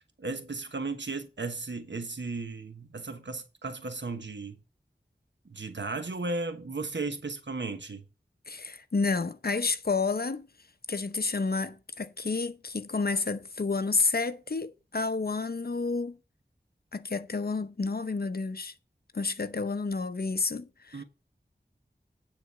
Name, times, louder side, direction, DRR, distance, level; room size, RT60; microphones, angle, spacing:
voice 1, 0.2-4.6 5.4-8.0 20.9-21.0, right 3 dB, 80° right, 1.1 m, -35 dB
voice 2, 8.5-10.5 10.9-16.2 16.9-18.7 19.1-21.0, left 4 dB, 55° left, 0.7 m, -30 dB
9.7 x 4.0 x 6.5 m
wide cardioid pair, 50°, 18 cm